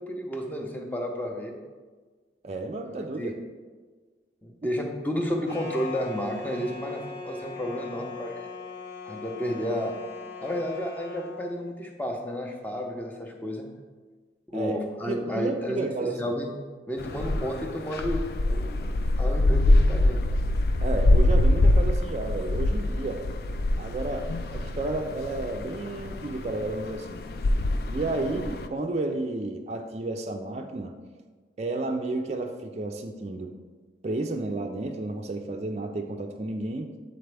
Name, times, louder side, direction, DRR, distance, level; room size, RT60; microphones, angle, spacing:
voice 1, 0.0-1.5 3.0-3.3 4.4-8.5 9.1-9.9 10.4-13.7 14.5-16.5 16.9-20.4, equal, 10° left, 1 dB, 0.6 m, -32 dB
voice 2, 2.4-3.3 4.6-4.7 14.5-14.8 15.1-16.3 20.8-23.2 23.5-27.2 27.9-30.9 31.6-33.5 34.0-36.9, right 2 dB, 35° right, 3 dB, 0.4 m, -32 dB
sound 1, 5.5-11.4, left 4 dB, 75° left, 1.4 m, -40 dB
sound 2, 17.0-28.7, left 1 dB, 55° left, 0.3 m, -24 dB
7.9 x 4.0 x 3.3 m, 1.4 s
head